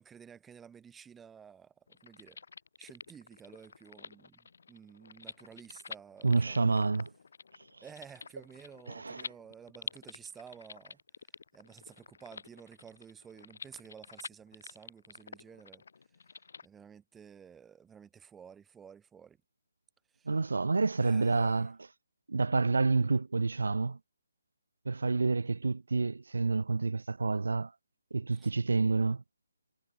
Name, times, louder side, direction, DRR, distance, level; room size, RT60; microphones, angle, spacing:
voice 1, 0.0-2.4 2.8-6.9 7.8-11.0 11.5-15.8 16.6-19.4 20.1-20.3 21.0-21.7 28.3-28.5, right 7 dB, 5° right, 1.6 m, -52 dB
sound 1, 1.9-16.7, left 5 dB, 50° left, 5.8 m, -49 dB
voice 2, 6.2-7.1 8.9-9.3 20.3-21.9 22.3-24.0 24.9-27.7 28.1-29.2, right 3 dB, 85° right, 0.5 m, -28 dB
hypercardioid pair, 175°, 0 cm